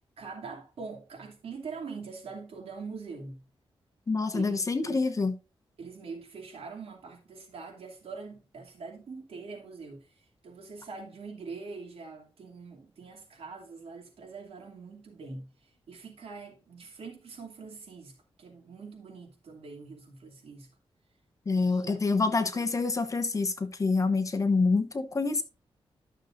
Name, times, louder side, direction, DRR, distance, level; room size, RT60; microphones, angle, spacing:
voice 1, 0.2-3.4 4.3-5.0 5.8-15.5 15.9-20.7 21.6-22.6, right 4 dB, 75° right, 2.6 m, -43 dB
voice 2, 4.1-5.3 21.5-25.4, left 3 dB, 35° left, 1.0 m, -27 dB
12.0 x 6.5 x 2.6 m
wide cardioid pair, 120°, 10 cm